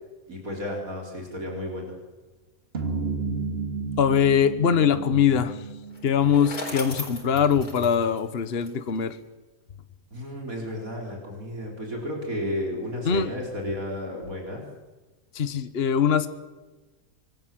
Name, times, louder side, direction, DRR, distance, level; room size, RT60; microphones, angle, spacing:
voice 1, 0.3-1.9 10.1-14.6, left 1 dB, 70° right, 0 dB, 4.8 m, -33 dB
sound 1, 2.7-7.1, right 4 dB, 40° right, 2.8 m, -33 dB
voice 2, 4.0-5.6 6.0-9.2 13.0-13.3 15.3-16.3, left 7 dB, 45° left, 11 dB, 1.4 m, -22 dB
Bicycle, 5.9-9.1, left 2 dB, 85° left, 4.8 m, -38 dB
26.0 x 21.5 x 7.7 m, 1.2 s
omnidirectional pair, 1.5 m